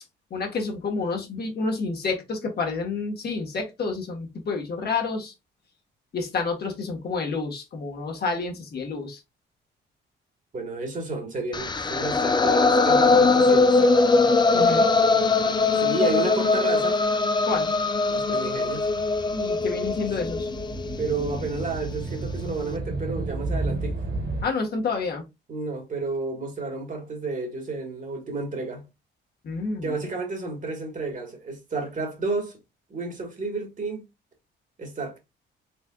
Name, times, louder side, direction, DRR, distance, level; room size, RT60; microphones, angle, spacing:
voice 1, 0.3-5.3 6.1-9.2 14.5-14.9 17.4-17.7 19.3-20.5 24.4-25.2 29.4-30.1, left 4 dB, 55° left, 1.5 m, -29 dB
voice 2, 10.5-14.1 15.7-17.0 18.1-18.9 21.0-24.0 25.5-28.8 29.8-32.6 32.9-34.0 34.8-35.2, right 3 dB, 40° right, 1.6 m, -31 dB
sound 1, 11.5-21.6, left 3 dB, 20° left, 0.6 m, -21 dB
sound 2, 17.9-24.4, right 2 dB, 60° right, 2.2 m, -33 dB
4.3 x 3.3 x 2.3 m
cardioid pair, 90°, 20 cm